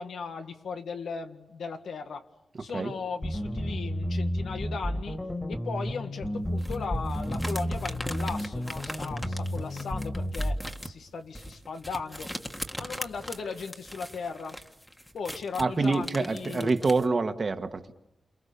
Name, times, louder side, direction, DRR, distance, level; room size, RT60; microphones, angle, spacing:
voice 1, 0.0-2.3 2.6-5.2 5.5-12.4 12.8-14.6 15.1-16.7, left 5 dB, 90° left, 2.0 m, -37 dB
sound 1, 3.2-10.6, equal, 20° left, 2.5 m, -32 dB
sound 2, 6.6-17.1, equal, 5° left, 1.7 m, -40 dB
voice 2, 15.6-17.9, right 3 dB, 45° right, 1.7 m, -26 dB
29.0 x 28.5 x 7.0 m
wide cardioid pair, 95°, 0 cm